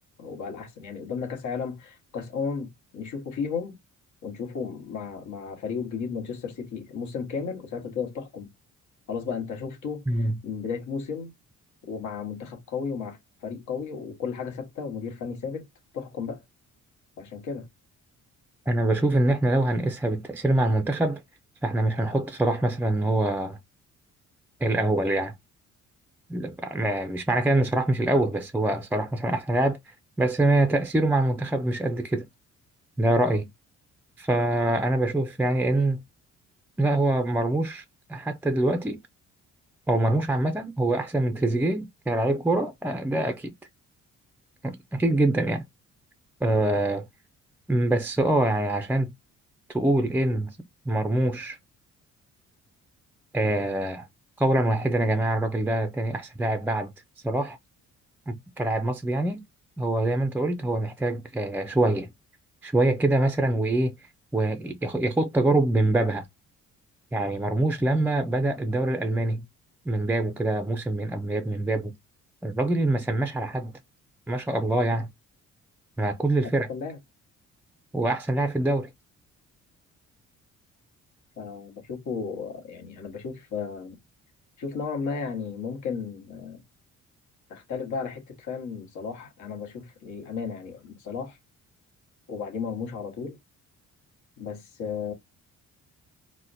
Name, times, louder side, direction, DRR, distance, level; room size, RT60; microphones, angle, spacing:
voice 1, 0.2-3.8 4.2-8.5 9.1-11.3 11.9-15.7 15.9-16.4 17.2-17.7 76.7-77.0 81.4-84.0 84.6-86.6 87.5-91.4 92.3-93.4 94.4-95.1, left 5 dB, 75° left, 1.1 m, -34 dB
voice 2, 18.7-21.2 21.6-23.6 24.6-25.3 26.3-32.2 33.0-33.5 34.2-36.0 36.8-37.8 38.1-39.0 39.9-43.5 44.6-45.6 46.4-47.0 47.7-49.1 49.7-50.6 50.9-51.6 53.3-54.1 54.4-56.9 57.2-57.6 58.3-59.4 59.8-62.1 62.6-63.9 64.3-66.3 67.1-69.4 69.9-71.9 72.4-73.7 74.3-75.1 76.0-76.7 77.9-78.9, right 1 dB, 5° right, 0.3 m, -24 dB
4.0 x 2.1 x 2.5 m
cardioid pair, 90°, 30 cm